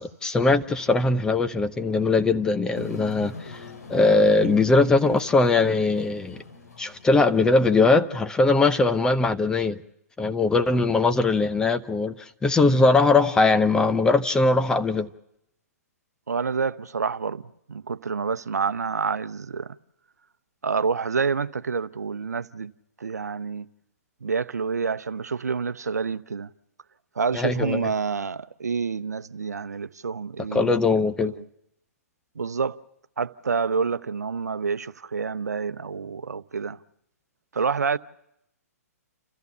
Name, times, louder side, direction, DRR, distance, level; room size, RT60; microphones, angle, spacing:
voice 1, 0.0-3.6 3.9-6.4 6.8-9.8 10.2-15.1 27.3-27.9 30.5-31.3, left 3 dB, 10° left, 0.8 m, -21 dB
sound 1, 2.7-7.5 7.9-8.0, left 3 dB, 75° left, 3.7 m, -40 dB
voice 2, 16.3-17.4 17.7-19.7 20.6-22.7 23.0-23.7 24.2-26.5 27.2-30.8 31.2-31.4 32.4-32.8 33.2-36.8 37.5-38.0, right 5 dB, 80° right, 0.8 m, -28 dB
29.5 x 14.0 x 6.8 m
hypercardioid pair, 130°, 9 cm